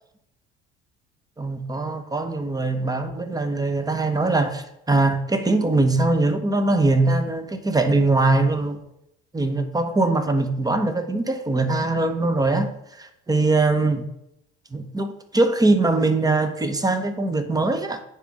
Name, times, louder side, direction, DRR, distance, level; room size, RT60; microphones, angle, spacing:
voice 1, 1.4-8.8 9.3-14.1 14.7-18.0, right 2 dB, 10° right, 1.0 m, -22 dB
9.4 x 3.6 x 6.3 m
figure-of-eight pair, 60°, 34 cm